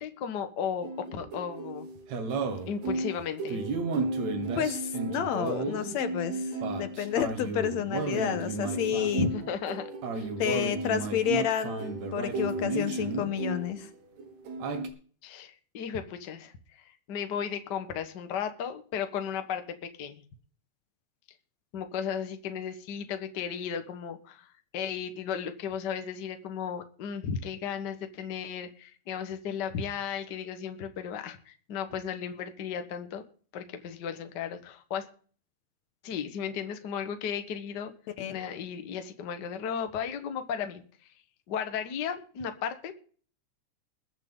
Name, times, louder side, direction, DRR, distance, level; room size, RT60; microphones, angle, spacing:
voice 1, 0.0-1.9 2.7-3.6 9.2-9.9 10.1-10.3 15.2-20.2 21.7-33.2 33.5-35.1 36.0-37.9 38.3-40.8 41.5-42.9, left 7 dB, 45° left, 8 dB, 1.5 m, -35 dB
sound 1, 0.8-13.9 14.2-14.9, right 3 dB, 70° right, 2.8 m, -33 dB
voice 2, 4.6-9.3 10.4-13.9 38.2-38.3, left 9 dB, 70° left, 11 dB, 2.2 m, -30 dB
21.5 x 8.0 x 3.8 m, 0.43 s
omnidirectional pair, 3.4 m